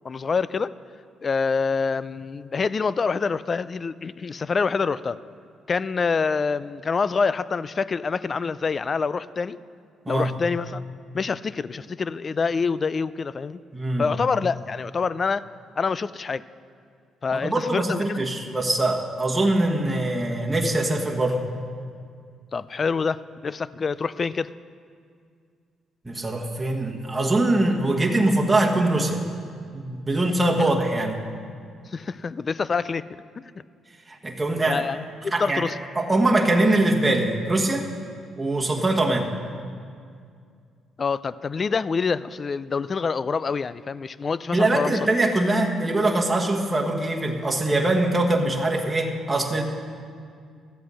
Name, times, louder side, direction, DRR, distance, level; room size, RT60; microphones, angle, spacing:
voice 1, 0.0-0.7 1.2-5.2 5.7-9.6 10.1-10.8 11.1-13.6 14.0-15.5 15.8-16.4 17.2-18.2 22.5-24.5 30.6-30.7 31.9-33.1 34.7-35.8 41.0-45.0, left 5 dB, 40° left, 18 dB, 0.3 m, -26 dB
voice 2, 13.7-14.1 17.3-21.4 26.0-29.2 29.7-31.2 34.1-34.8 35.3-35.6 35.9-37.9 38.4-39.3 44.5-49.6, right 2 dB, 15° right, -1 dB, 1.4 m, -22 dB
13.5 x 8.1 x 6.3 m, 2.2 s
cardioid pair, 90°, 0 cm